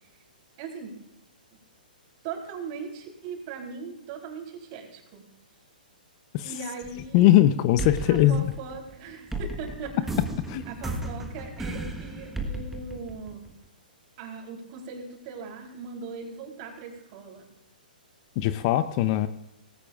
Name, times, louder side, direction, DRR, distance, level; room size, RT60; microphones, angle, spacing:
voice 1, 0.6-1.0 2.2-5.3 6.4-7.3 8.1-10.0 10.7-13.5 14.2-17.5, right 5 dB, 40° right, 1 dB, 3.7 m, -39 dB
sound 1, 6.8-7.4 7.8-13.7, right 2 dB, 5° right, 1.4 m, -34 dB
voice 2, 7.1-8.5 10.5-10.6 18.4-19.3, left 13 dB, 40° left, 12 dB, 0.7 m, -20 dB
18.5 x 17.0 x 2.5 m, 0.90 s
hypercardioid pair, 135°, 5 cm